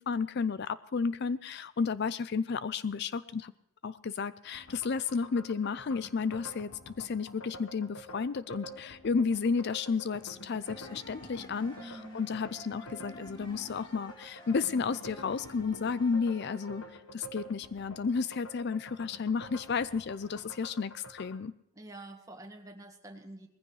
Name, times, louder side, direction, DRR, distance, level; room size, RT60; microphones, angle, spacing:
voice 1, 0.0-3.5 3.8-16.8 17.1-21.5, left 5 dB, 55° left, 16 dB, 0.4 m, -32 dB
sound 1, 4.5-21.4, equal, 80° left, 1.3 m, -49 dB
sound 2, 9.3-20.5, equal, 20° left, 2.0 m, -55 dB
voice 2, 11.8-12.3 21.7-23.5, right 1 dB, 15° right, 3 dB, 1.8 m, -47 dB
20.0 x 15.0 x 3.3 m, 0.78 s
head